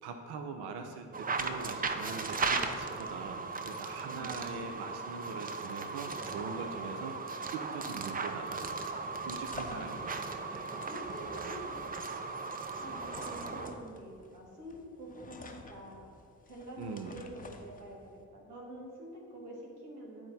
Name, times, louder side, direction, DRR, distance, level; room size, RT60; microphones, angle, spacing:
voice 1, 0.0-8.8 9.2-10.6 16.8-17.1, right 5 dB, 60° right, 5 dB, 0.7 m, -42 dB
sound 1, 1.1-13.8, right 4 dB, 20° right, 0.5 m, -37 dB
voice 2, 4.0-4.4 9.7-10.3 10.9-12.1 12.6-16.0 16.5-16.9 17.1-20.3, right 1 dB, 90° right, -3 dB, 1.0 m, -47 dB
sound 2, 8.4-18.2, left 3 dB, 20° left, 0.7 m, -51 dB
10.0 x 4.5 x 3.9 m, 2.3 s
figure-of-eight pair, 40°, 46 cm